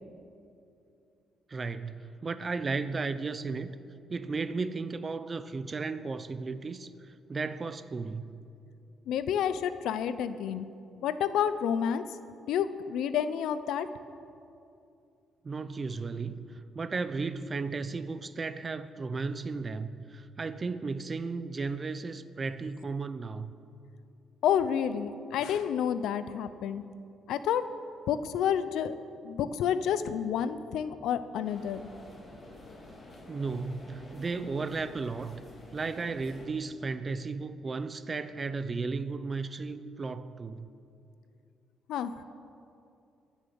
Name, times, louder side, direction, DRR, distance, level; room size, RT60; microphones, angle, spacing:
voice 1, 1.5-3.7 4.1-8.4 15.4-23.5 33.3-35.4 35.7-40.7, right 4 dB, 35° right, 13 dB, 0.6 m, -35 dB
voice 2, 9.1-10.7 11.0-12.1 12.5-13.9 24.4-26.8 27.3-27.6 28.1-28.9 29.2-31.8 41.9-42.1, left 8 dB, 85° left, 13 dB, 0.6 m, -29 dB
sound 1, 31.4-36.4, left 1 dB, 35° left, 3.8 m, -49 dB
21.5 x 7.3 x 7.0 m, 2.6 s
cardioid pair, 90°, 0 cm